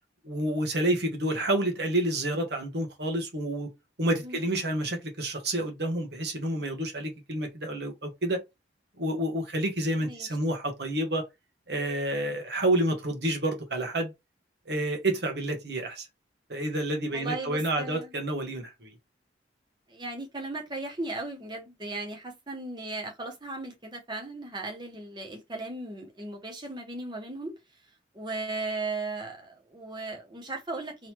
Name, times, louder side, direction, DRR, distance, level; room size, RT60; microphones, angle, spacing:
voice 1, 0.2-3.7 4.0-8.4 9.0-11.2 11.7-14.1 14.7-16.1 16.5-18.9, right 1 dB, 60° right, 1.2 m, -29 dB
voice 2, 17.1-18.1 19.9-27.5 28.1-31.1, right 2 dB, 25° right, 1.0 m, -36 dB
3.9 x 3.1 x 2.9 m
head